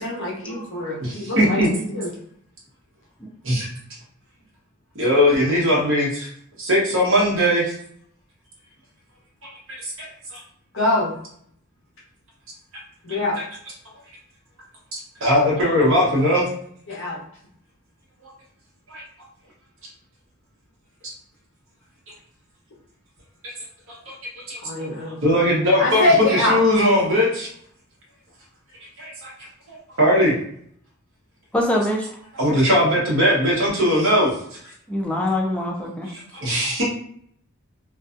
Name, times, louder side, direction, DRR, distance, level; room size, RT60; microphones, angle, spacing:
voice 1, 0.0-2.1 10.7-11.1 13.0-13.4 16.9-17.2 24.6-25.2 25.8-26.6, left 2 dB, 65° left, -4 dB, 0.8 m, -23 dB
voice 2, 1.0-1.7 3.4-3.7 4.9-6.3 6.6-7.7 10.3-10.4 15.2-16.5 18.9-19.0 24.1-24.2 24.5-24.6 25.2-26.0 26.3-27.5 29.0-29.3 29.7-30.3 32.4-34.3 36.3-36.8, equal, 65° right, -5 dB, 0.9 m, -19 dB
voice 3, 31.5-32.2 34.9-36.1, left 1 dB, 5° left, -2 dB, 0.4 m, -23 dB
2.5 x 2.3 x 2.4 m, 0.64 s
head